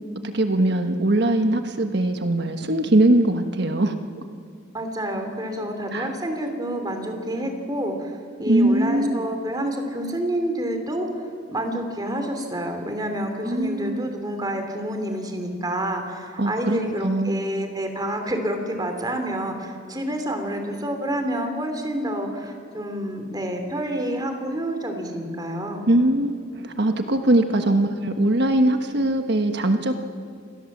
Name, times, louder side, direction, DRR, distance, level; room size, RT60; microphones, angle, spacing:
voice 1, 0.2-4.2 5.9-6.1 8.5-9.2 13.4-14.0 16.4-17.4 25.9-29.9, right 1 dB, 55° right, 6 dB, 1.3 m, -21 dB
voice 2, 4.7-11.1 11.5-25.9, right 1 dB, 20° right, 5 dB, 3.0 m, -28 dB
28.0 x 19.5 x 7.4 m, 2.2 s
head